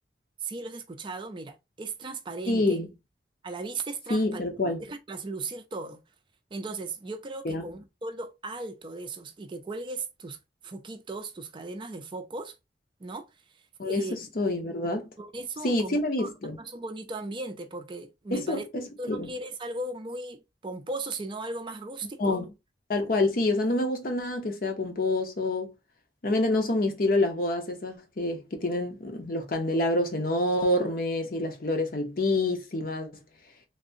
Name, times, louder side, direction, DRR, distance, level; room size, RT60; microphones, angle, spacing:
voice 1, 0.4-2.8 3.4-6.0 6.5-10.4 10.6-12.5 13.0-13.3 13.8-14.2 15.2-16.3 16.6-18.7 19.0-22.4, right 3 dB, 30° right, 0.4 m, -37 dB
voice 2, 2.5-2.9 4.1-4.8 7.4-7.6 13.8-15.1 15.6-16.6 18.3-19.3 22.2-22.5 22.9-25.7 26.2-33.1, left 2 dB, 55° left, 0.8 m, -27 dB
3.3 x 2.7 x 2.6 m
head